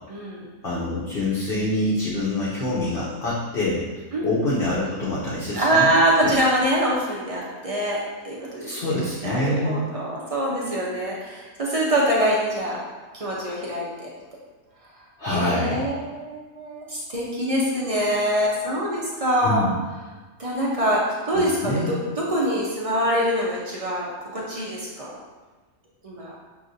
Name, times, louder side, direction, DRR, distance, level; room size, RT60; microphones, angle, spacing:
voice 1, 0.1-0.4 4.1-4.3 5.5-8.9 9.2-12.8 13.1-14.1 15.2-19.7 20.4-25.1 26.0-26.3, equal, 45° right, -5 dB, 0.4 m, -24 dB
voice 2, 0.6-3.9 4.2-5.9 6.2-6.3 8.6-9.9 15.2-15.8 19.4-19.8 21.3-21.9, left 1 dB, 50° left, -7 dB, 0.8 m, -25 dB
5.8 x 2.6 x 2.6 m, 1.3 s
omnidirectional pair, 1.5 m